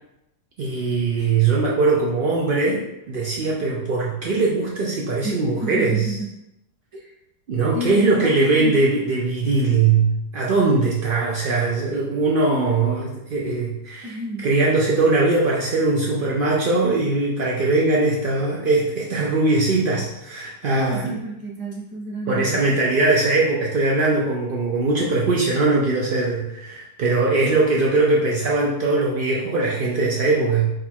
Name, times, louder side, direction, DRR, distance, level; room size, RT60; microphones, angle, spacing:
voice 1, 0.6-6.2 7.5-14.2 14.4-21.2 22.3-30.7, right 3 dB, 85° right, -4 dB, 0.4 m, -21 dB
voice 2, 5.6-6.3 6.9-7.1 7.7-8.8 14.0-14.5 20.7-22.7, right 1 dB, 20° right, -3 dB, 0.5 m, -30 dB
4.9 x 2.3 x 4.3 m, 0.86 s
omnidirectional pair, 1.7 m